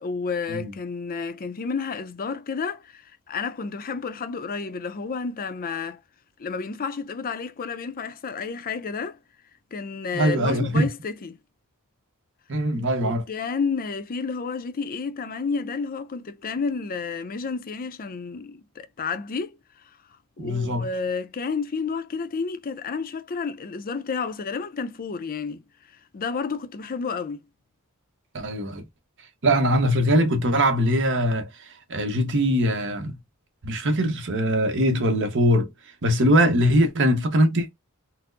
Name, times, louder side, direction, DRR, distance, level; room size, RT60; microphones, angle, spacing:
voice 1, 0.0-6.0 6.4-9.2 9.7-11.4 13.0-19.6 19.9-20.0 20.4-25.6 26.1-27.4, left 5 dB, 40° left, 0.5 m, -31 dB
voice 2, 10.1-10.9 12.5-13.2 20.4-20.9 28.3-28.8 29.4-31.5 31.9-33.2 33.6-35.7 36.0-37.7, equal, 60° right, 0.9 m, -21 dB
4.3 x 2.0 x 2.6 m
head